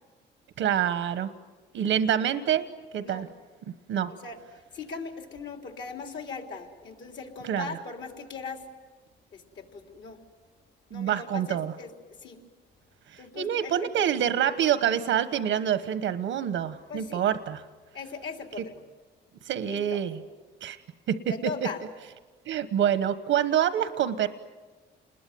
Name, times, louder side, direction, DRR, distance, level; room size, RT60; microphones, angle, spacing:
voice 1, 0.6-1.3 1.7-2.7 2.9-3.3 3.9-4.1 7.4-7.7 10.9-11.7 13.1-17.6 19.5-20.2 20.6-20.8 21.1-21.3 22.4-24.3, right 9 dB, 85° right, 11 dB, 1.2 m, -26 dB
voice 2, 4.7-8.7 9.3-10.2 10.9-11.9 12.2-12.4 13.2-13.9 16.9-17.2 17.9-18.8 19.6-20.0 21.3-21.8, left 5 dB, 65° left, 3 dB, 3.8 m, -39 dB
28.5 x 21.0 x 9.4 m, 1.3 s
cardioid pair, 90°, 20 cm